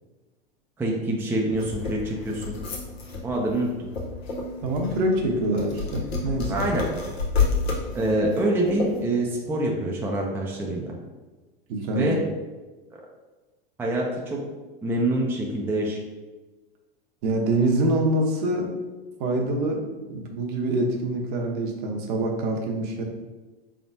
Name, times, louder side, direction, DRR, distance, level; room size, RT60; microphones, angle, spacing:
voice 1, 0.8-2.6 3.2-3.9 6.5-6.8 7.9-10.9 11.9-12.2 13.8-14.4 14.8-16.0, right 1 dB, 5° right, -2 dB, 0.5 m, -25 dB
sound 1, 1.5-9.0, left 4 dB, 85° left, 0.9 m, -30 dB
voice 2, 4.6-6.7 11.7-12.1 17.2-18.7 19.2-19.8 20.1-23.0, right 1 dB, 55° right, 1 dB, 0.9 m, -25 dB
3.8 x 3.5 x 2.7 m, 1.2 s
hypercardioid pair, 100°, 30 cm